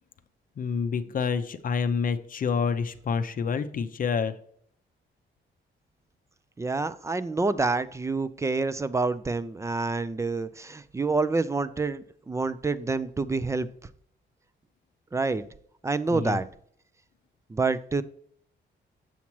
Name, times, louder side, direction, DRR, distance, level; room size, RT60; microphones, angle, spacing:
voice 1, 0.6-4.3 16.1-16.4, left 6 dB, 45° left, 9 dB, 0.6 m, -28 dB
voice 2, 6.6-13.7 15.1-15.4 15.8-16.5 17.5-18.0, right 3 dB, 15° right, 15 dB, 0.3 m, -27 dB
7.2 x 7.1 x 3.0 m, 0.63 s
cardioid pair, 130°, 19 cm